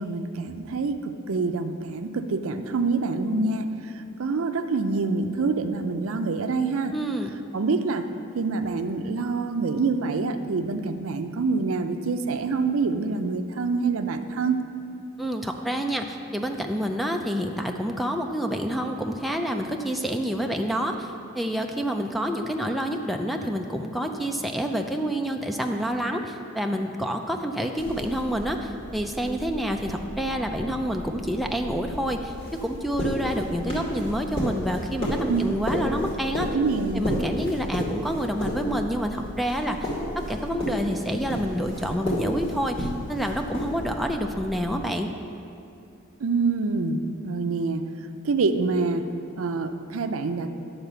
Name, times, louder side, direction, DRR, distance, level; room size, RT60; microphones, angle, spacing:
voice 1, 0.0-3.9 4.2-6.9 7.5-8.1 8.3-14.6 35.3-35.5 36.4-37.0 46.2-47.9 48.2-50.6, right 4 dB, 80° right, 8 dB, 0.5 m, -26 dB
voice 2, 6.9-7.3 15.2-32.3 32.6-36.5 36.9-39.9 40.1-45.1, equal, ahead, 2 dB, 0.4 m, -28 dB
sound 1, 27.8-44.9, equal, 30° left, 2.4 m, -33 dB
11.0 x 4.1 x 6.8 m, 2.6 s
head